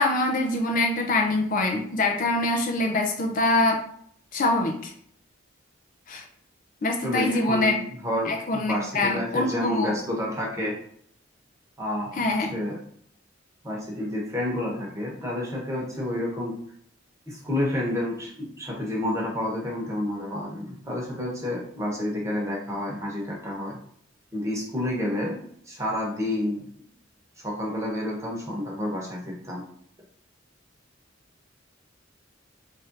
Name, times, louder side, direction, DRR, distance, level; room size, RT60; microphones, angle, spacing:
voice 1, 0.0-3.9 4.3-4.9 6.1-6.2 6.8-7.8 8.3-9.9 12.1-12.5, left 2 dB, 45° left, 3 dB, 0.5 m, -24 dB
voice 2, 7.0-7.7 8.0-10.7 11.8-12.1 12.5-12.8 13.6-16.5 17.3-23.8 24.3-25.4 25.7-26.6 27.4-29.6, left 1 dB, 15° right, -3 dB, 1.0 m, -29 dB
3.2 x 2.6 x 3.8 m, 0.65 s
head